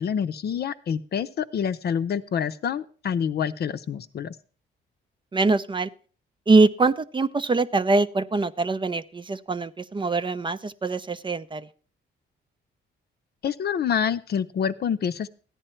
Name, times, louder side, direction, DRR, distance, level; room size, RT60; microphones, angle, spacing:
voice 1, 0.0-4.4 13.4-15.3, left 7 dB, 55° left, 11 dB, 0.7 m, -27 dB
voice 2, 5.3-5.9 6.5-11.7, right 3 dB, 25° right, 12 dB, 0.6 m, -23 dB
14.0 x 10.0 x 4.4 m, 0.41 s
cardioid pair, 90°, 20 cm